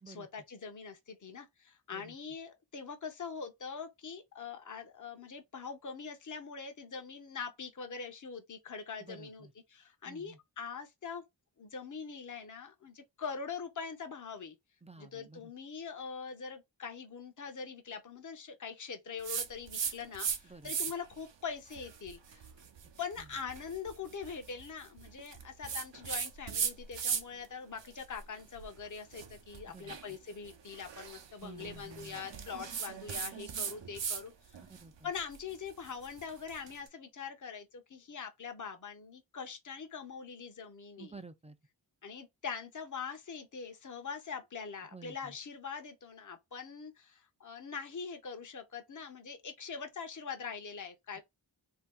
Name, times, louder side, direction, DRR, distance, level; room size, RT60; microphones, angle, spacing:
voice 1, 0.1-11.2 11.6-14.6 15.0-22.5 23.0-34.6 35.0-41.1 42.0-51.2, left 6 dB, 40° left, 0.8 m, -43 dB
voice 2, 9.0-9.5 10.1-10.4 14.8-15.5 20.4-20.7 23.2-23.3 29.7-30.0 31.4-32.2 34.7-35.1 41.0-41.6 44.9-45.4, right 3 dB, 15° right, 0.4 m, -51 dB
sound 1, 19.2-20.4 20.6-21.2 21.7-27.5 27.8-34.2 34.5-36.7, right 7 dB, 70° right, 0.7 m, -39 dB
2.8 x 2.3 x 3.6 m
wide cardioid pair, 60°, 46 cm